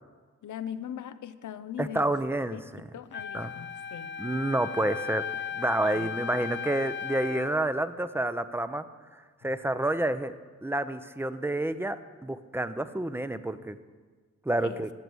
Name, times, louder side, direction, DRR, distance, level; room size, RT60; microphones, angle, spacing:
voice 1, 0.4-2.1 2.5-4.1 5.8-6.1 14.6-14.8, left 9 dB, 85° left, 13 dB, 0.6 m, -40 dB
voice 2, 1.8-2.8 3.3-3.6 4.2-5.2 5.5-8.8 9.4-10.3 10.6-12.0 12.2-13.8 14.5-14.9, right 1 dB, 10° right, 12 dB, 0.6 m, -29 dB
Wind instrument woodwind instrument, 3.1-7.6, left 8 dB, 40° left, 0.4 m, -36 dB
14.5 x 6.9 x 6.2 m, 1.5 s
cardioid pair, 70°, 30 cm